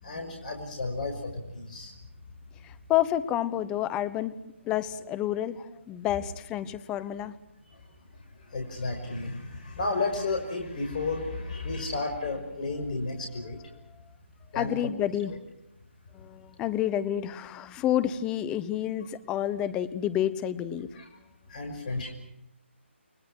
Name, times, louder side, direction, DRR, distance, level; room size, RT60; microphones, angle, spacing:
voice 1, 0.0-1.9 7.7-7.8 8.5-13.6 14.5-14.9 20.9-21.1 21.5-22.1, left 3 dB, 40° left, 3 dB, 5.8 m, -32 dB
voice 2, 2.9-4.3 4.7-7.3 14.5-15.3 16.1-20.9, left 11 dB, 10° left, 14 dB, 1.0 m, -29 dB
29.5 x 21.0 x 6.3 m, 0.85 s
figure-of-eight pair, 145°, 7 cm